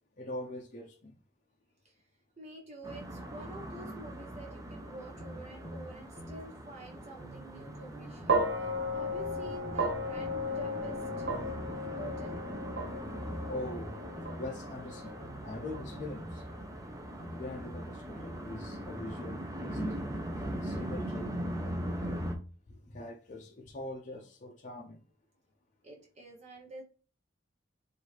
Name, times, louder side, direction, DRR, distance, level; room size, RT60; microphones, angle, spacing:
voice 1, 0.2-1.2 13.4-14.0 14.3-16.5 17.3-19.8 20.5-21.3 21.6-22.2 22.7-25.0, left 2 dB, 40° left, 0.6 m, -43 dB
voice 2, 2.4-11.3 11.9-12.5 25.8-26.8, right 1 dB, 40° right, 1.0 m, -48 dB
sound 1, 2.8-22.3, equal, 20° right, 0.7 m, -41 dB
sound 2, 5.2-6.4 7.2-8.4 9.1-10.4 11.2-12.4 13.1-14.4 15.2-16.4 17.1-18.4 19.2-20.4 21.1-21.2, equal, 5° left, 1.7 m, -46 dB
sound 3, 8.3-16.6, right 1 dB, 60° right, 0.8 m, -35 dB
4.7 x 2.7 x 3.2 m
head